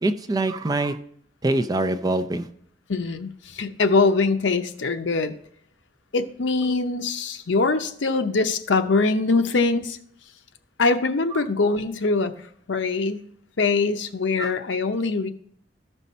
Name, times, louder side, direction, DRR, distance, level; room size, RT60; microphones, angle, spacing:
voice 1, 0.0-1.0 1.4-2.5 14.4-14.5, right 2 dB, 20° right, 9 dB, 0.4 m, -24 dB
voice 2, 2.9-5.3 6.1-10.0 10.8-12.3 12.7-13.3 13.6-15.3, left 3 dB, 80° left, 8 dB, 0.7 m, -23 dB
13.5 x 5.4 x 4.2 m, 0.67 s
head